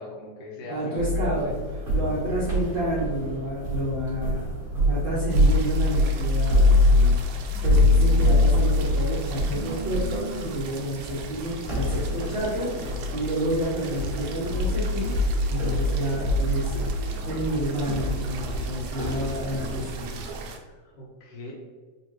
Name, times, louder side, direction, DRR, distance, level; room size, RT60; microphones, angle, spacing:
voice 1, 0.0-1.6 2.0-2.5 20.6-21.5, left 2 dB, 80° left, -4 dB, 2.5 m, -41 dB
voice 2, 0.7-1.5 1.9-4.4 4.7-15.1 15.5-16.8 17.3-20.2, equal, 70° right, -10 dB, 1.1 m, -30 dB
sound 1, 1.0-20.5, left 1 dB, 35° right, 0.9 m, -24 dB
Telephone, 4.2-12.3, right 2 dB, 60° left, 1.8 m, -42 dB
sound 2, 5.3-20.6, right 5 dB, 85° right, 1.4 m, -42 dB
5.0 x 2.5 x 3.0 m, 1.4 s
omnidirectional pair, 3.4 m